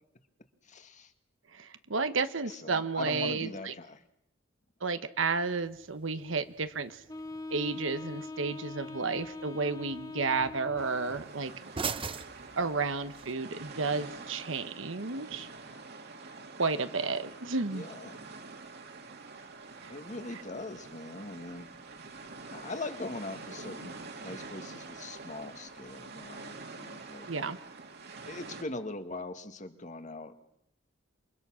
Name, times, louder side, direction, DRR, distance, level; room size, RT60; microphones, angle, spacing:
voice 1, 0.6-1.1 2.5-4.0 17.6-18.2 19.9-21.7 22.5-27.3 28.2-30.4, left 2 dB, 40° left, 8 dB, 1.8 m, -41 dB
voice 2, 1.5-3.7 4.8-7.0 7.5-11.5 12.6-15.5 16.6-17.8 19.8-19.9 27.3-27.6, right 4 dB, 75° right, 10 dB, 1.1 m, -32 dB
sound 1, 5.3-13.3, right 5 dB, 25° right, 0.9 m, -44 dB
Wind instrument woodwind instrument, 7.1-11.2, left 2 dB, 20° left, 1.4 m, -42 dB
sound 2, 10.8-28.6, right 3 dB, 55° right, 2.5 m, -46 dB
28.0 x 23.0 x 6.3 m, 0.76 s
head